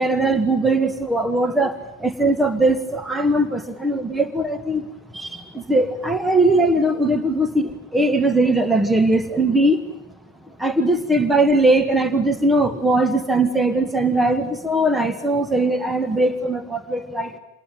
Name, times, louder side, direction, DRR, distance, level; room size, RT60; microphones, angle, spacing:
voice 1, 0.0-1.7 2.0-4.8 5.1-5.3 5.7-9.8 10.6-17.4, right 2 dB, 5° right, 8 dB, 1.8 m, -20 dB
27.5 x 21.0 x 9.2 m, 0.82 s
figure-of-eight pair, 90°, 0 cm